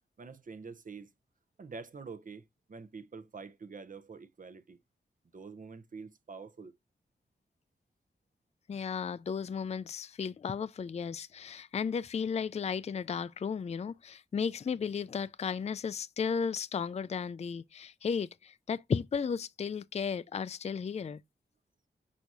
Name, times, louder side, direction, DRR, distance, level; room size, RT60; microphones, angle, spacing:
voice 1, 0.2-1.1 1.6-2.4 2.7-4.8 5.3-6.7, right 4 dB, 50° right, 0.8 m, -46 dB
voice 2, 8.7-21.2, left 6 dB, 35° left, 0.4 m, -34 dB
6.3 x 5.6 x 2.6 m
wide cardioid pair, 115°, 18 cm